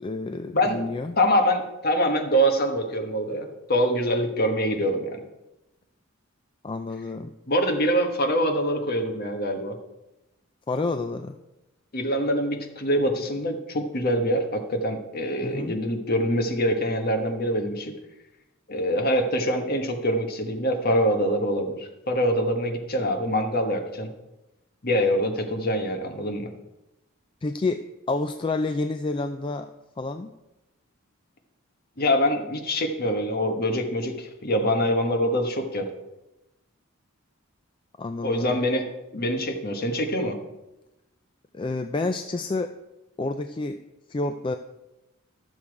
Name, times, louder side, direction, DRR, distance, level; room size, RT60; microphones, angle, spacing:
voice 1, 0.0-1.2 6.6-7.3 10.7-11.4 15.4-15.7 27.4-29.7 30.0-30.3 38.0-38.6 41.5-42.7 43.2-43.8 44.1-44.6, left 3 dB, 25° left, 7 dB, 0.4 m, -29 dB
voice 2, 1.2-5.2 7.5-9.8 11.9-17.9 18.7-24.1 24.8-26.5 32.0-35.9 38.2-38.9 39.1-40.4, equal, 45° left, 4 dB, 1.3 m, -24 dB
12.5 x 7.1 x 4.8 m, 0.96 s
head